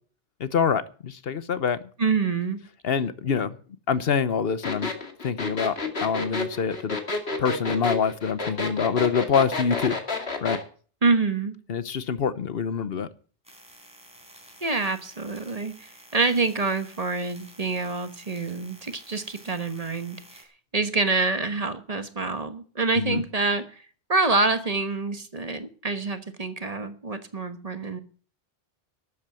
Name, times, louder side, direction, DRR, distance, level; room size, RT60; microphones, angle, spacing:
voice 1, 0.4-1.8 2.8-3.6 3.9-4.9 5.2-7.0 7.4-10.0 10.4-10.6 11.7-13.1 23.0-23.2, left 6 dB, 70° left, 1.1 m, -25 dB
voice 2, 2.0-2.6 11.0-11.5 14.6-20.4 20.7-23.8 24.1-28.0, right 3 dB, 40° right, 1.3 m, -26 dB
sound 1, 4.6-10.6, left 3 dB, 90° left, 2.5 m, -30 dB
sound 2, 13.4-20.4, right 1 dB, 5° right, 4.1 m, -51 dB
12.5 x 8.4 x 7.5 m
omnidirectional pair, 1.0 m